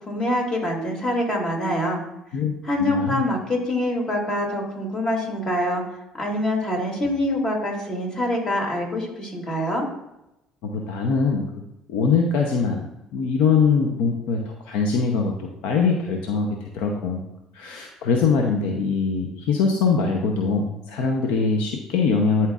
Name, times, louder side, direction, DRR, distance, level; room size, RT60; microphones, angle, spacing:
voice 1, 0.1-2.0 2.6-5.8 6.2-9.9, left 1 dB, 35° left, 0 dB, 2.5 m, -25 dB
voice 2, 2.8-3.2 10.6-11.4 11.9-12.9 13.1-17.2 17.5-22.5, left 5 dB, 75° left, 2 dB, 0.7 m, -22 dB
11.5 x 4.4 x 2.4 m, 0.88 s
hypercardioid pair, 65°, 2 cm